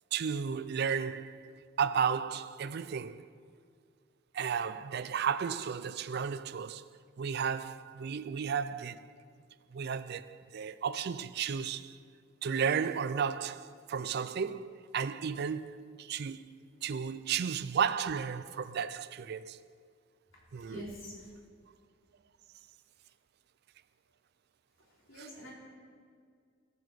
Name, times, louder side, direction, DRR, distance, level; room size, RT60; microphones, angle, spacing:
voice 1, 0.1-1.5 1.8-3.2 4.3-6.8 7.2-9.1 9.7-12.0 12.4-19.6 20.5-20.9 25.2-25.3, right 7 dB, 50° right, 0.4 m, -33 dB
voice 2, 20.6-21.3 25.1-25.5, left 1 dB, 65° left, 3.3 m, -45 dB
14.0 x 6.8 x 6.7 m
head